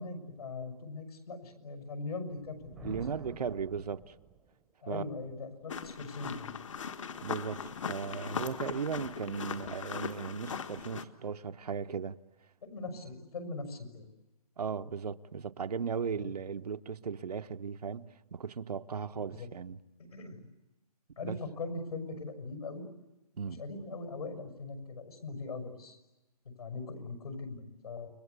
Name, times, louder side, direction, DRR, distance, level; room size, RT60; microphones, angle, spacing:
voice 1, 0.0-3.0 4.8-6.6 9.5-9.6 12.6-14.1 16.1-16.3 19.2-19.5 20.0-20.4 21.2-22.8 23.5-26.0 26.4-28.1, left 3 dB, 70° left, 6.3 m, -41 dB
Thunder, 2.4-4.7, right 5 dB, ahead, 0.9 m, -51 dB
voice 2, 2.8-4.1 4.9-5.0 7.2-12.2 14.6-19.8 21.2-21.3 23.4-23.6, right 6 dB, 80° right, 1.0 m, -37 dB
sound 1, 5.7-11.0, left 6 dB, 50° left, 1.5 m, -39 dB
29.5 x 23.0 x 8.2 m
hypercardioid pair, 175°, 20 cm